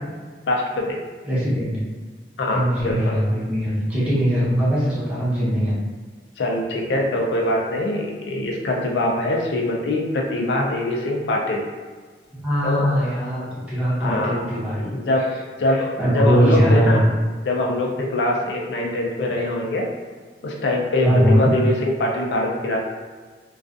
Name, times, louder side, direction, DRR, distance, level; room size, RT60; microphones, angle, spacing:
voice 1, 0.5-1.0 2.4-3.2 6.4-11.6 12.6-12.9 13.9-14.5 14.9-15.3 15.6-17.1 17.4-19.9 20.4-22.8, left 1 dB, 75° left, -1 dB, 0.4 m, -23 dB
voice 2, 1.2-1.8 2.5-5.7 12.4-14.9 16.0-16.9 21.0-21.5, equal, 5° right, -10 dB, 0.8 m, -20 dB
2.4 x 2.3 x 2.4 m, 1.5 s
head